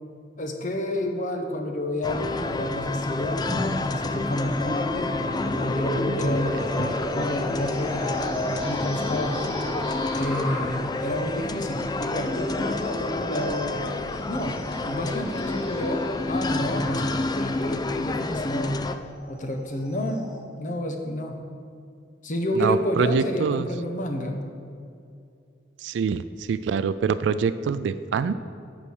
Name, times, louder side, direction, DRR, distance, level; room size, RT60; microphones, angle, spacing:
voice 1, 0.4-5.1 5.5-6.8 7.1-9.5 10.1-13.8 14.3-18.8 19.3-20.2 20.6-21.4 22.2-24.4, left 1 dB, 45° left, 4 dB, 0.9 m, -29 dB
sound 1, 2.0-19.0, left 2 dB, 25° left, 0.3 m, -29 dB
sound 2, 3.4-20.4, equal, 5° right, 2.2 m, -35 dB
voice 2, 22.6-23.7 25.8-28.3, right 6 dB, 85° right, 14 dB, 0.3 m, -25 dB
8.5 x 6.2 x 6.3 m, 2.4 s
head